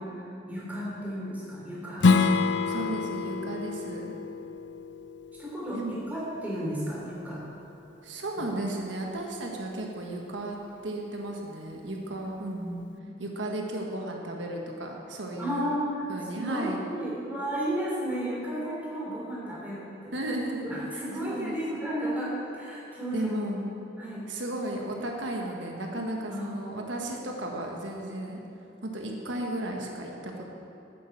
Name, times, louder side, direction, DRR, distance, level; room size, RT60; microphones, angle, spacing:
voice 1, 0.0-2.1 2.5-2.8 5.3-5.8 6.1-7.4 8.3-8.4 12.2-12.3 12.8-13.1 15.4-20.1 20.6-23.3 24.0-24.3 26.3-26.5, equal, 10° right, -6 dB, 3.2 m, -33 dB
Strum, 2.0-7.2, left 4 dB, 75° left, 0.5 m, -27 dB
voice 2, 2.7-4.1 5.7-6.0 8.0-10.6 10.8-12.8 13.2-15.7 16.1-16.8 20.1-21.6 23.1-23.8 24.3-28.4 28.8-30.5, right 1 dB, 85° right, 0 dB, 1.4 m, -34 dB
9.4 x 9.1 x 7.2 m, 2.8 s
head